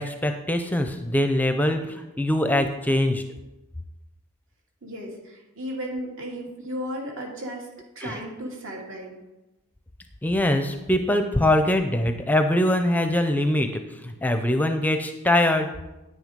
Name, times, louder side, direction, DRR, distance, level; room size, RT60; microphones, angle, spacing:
voice 1, 0.0-3.2 8.0-8.2 10.2-15.7, left 1 dB, 10° left, 7 dB, 0.6 m, -23 dB
voice 2, 4.8-7.7 7.9-9.2, equal, 60° right, -1 dB, 3.0 m, -34 dB
10.0 x 9.3 x 5.2 m, 0.99 s
head